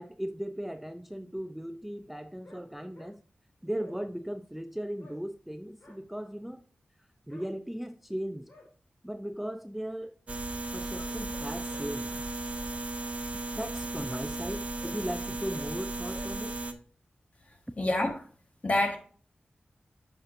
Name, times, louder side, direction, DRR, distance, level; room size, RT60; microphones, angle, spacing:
voice 1, 0.0-3.2 3.6-6.6 7.3-8.5 9.0-10.2 10.7-12.1 13.6-16.6, equal, 5° right, 0.3 m, -37 dB
sound 1, 2.1-2.6 2.9-3.1 3.8-4.0 5.0-5.2 5.8-6.0 7.3-7.5 8.2-8.7 10.9-11.9 12.5-12.7 13.7-15.0 15.5-15.7 16.1-16.3, left 1 dB, 65° left, 2.2 m, -52 dB
sound 2, 10.3-16.7, right 2 dB, 40° right, 0.7 m, -35 dB
voice 2, 17.8-18.2 18.6-19.0, left 1 dB, 40° left, 1.4 m, -26 dB
7.5 x 5.9 x 2.6 m
wide cardioid pair, 90°, 3 cm